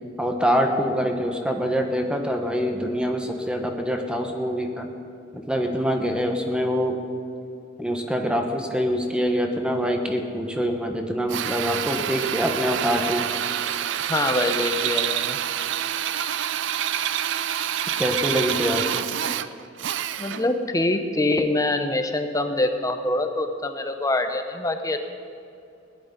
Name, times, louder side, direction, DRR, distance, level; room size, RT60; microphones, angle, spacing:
voice 1, 0.2-4.9 5.3-7.0 7.8-13.3 18.0-19.1, equal, 5° right, 3 dB, 1.0 m, -25 dB
Drill, 11.3-20.6, right 10 dB, 65° right, 0.4 m, -27 dB
voice 2, 14.1-15.4 20.2-25.0, left 2 dB, 20° left, 6 dB, 0.8 m, -24 dB
18.0 x 10.5 x 5.2 m, 2.6 s
head